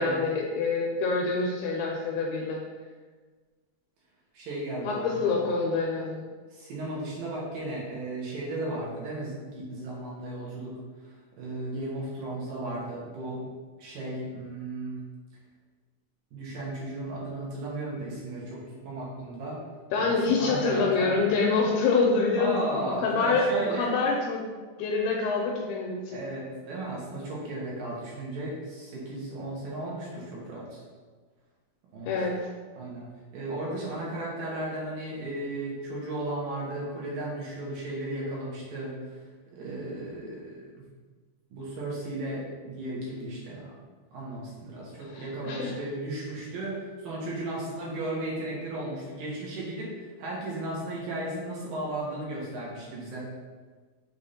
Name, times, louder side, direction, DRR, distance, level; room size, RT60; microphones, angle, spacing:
voice 1, 0.0-2.6 4.8-6.3 19.9-22.6 23.0-24.4 24.8-26.2 32.0-32.5 45.1-45.7, left 4 dB, 85° left, 0 dB, 2.5 m, -26 dB
voice 2, 4.3-5.4 6.5-10.8 11.0-13.4 13.8-15.0 16.3-19.6 19.9-21.1 22.4-24.0 26.1-30.8 31.9-32.3 32.8-39.0 39.5-40.8 41.5-43.7 44.1-53.3, right 1 dB, 70° right, -5 dB, 2.8 m, -35 dB
6.4 x 3.5 x 4.2 m, 1.4 s
omnidirectional pair, 4.3 m